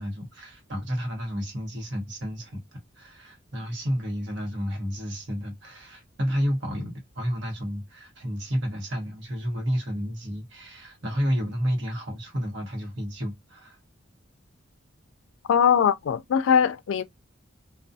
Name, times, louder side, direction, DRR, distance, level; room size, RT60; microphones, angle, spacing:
voice 1, 0.0-13.8, equal, 60° right, 1.0 m, -31 dB
voice 2, 15.5-17.0, left 7 dB, 80° left, 0.3 m, -21 dB
2.3 x 2.2 x 2.6 m
head